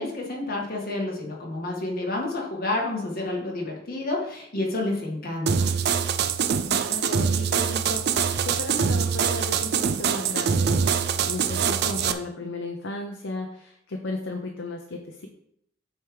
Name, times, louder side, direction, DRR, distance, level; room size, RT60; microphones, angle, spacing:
voice 1, 0.0-5.7, left 2 dB, 50° left, -2 dB, 1.9 m, -29 dB
sound 1, 5.5-12.1, right 6 dB, 60° right, 0.5 m, -24 dB
voice 2, 6.6-15.3, left 2 dB, 75° left, 1 dB, 0.8 m, -35 dB
7.9 x 3.6 x 4.8 m, 0.70 s
head